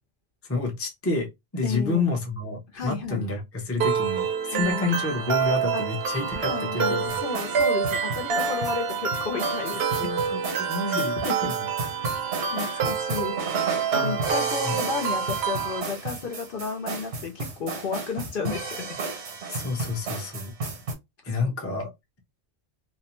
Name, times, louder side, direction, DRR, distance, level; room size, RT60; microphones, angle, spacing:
voice 1, 0.5-1.3 1.5-7.2 10.0-11.1 11.4-11.7 12.2-12.3 14.7-14.8 19.5-20.5 21.2-21.9, left 3 dB, 15° left, 0.5 m, -29 dB
voice 2, 1.6-2.1 2.7-3.3 4.5-4.9 5.7-5.8 6.4-10.1 10.9-11.5 12.5-13.7 14.0-19.0 21.4-21.5, left 5 dB, 60° left, 0.7 m, -33 dB
sound 1, 3.8-15.8, right 6 dB, 70° right, 0.8 m, -27 dB
sound 2, 7.1-20.9, right 3 dB, 90° right, 1.2 m, -33 dB
2.5 x 2.0 x 2.9 m
omnidirectional pair, 1.1 m